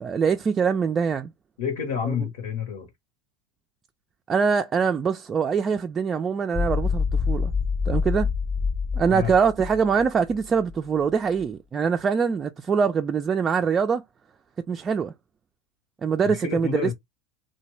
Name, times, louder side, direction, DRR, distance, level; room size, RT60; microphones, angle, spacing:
voice 1, 0.0-1.3 2.1-2.2 4.3-7.5 7.9-8.3 8.9-14.0 14.7-15.1 16.0-16.9, right 6 dB, 30° right, 0.3 m, -23 dB
voice 2, 1.6-2.9 9.1-9.3 16.2-16.9, left 7 dB, 80° left, 1.0 m, -29 dB
sound 1, 6.5-10.8, left 5 dB, 25° left, 0.6 m, -26 dB
2.8 x 2.2 x 3.1 m
hypercardioid pair, 100°, 0 cm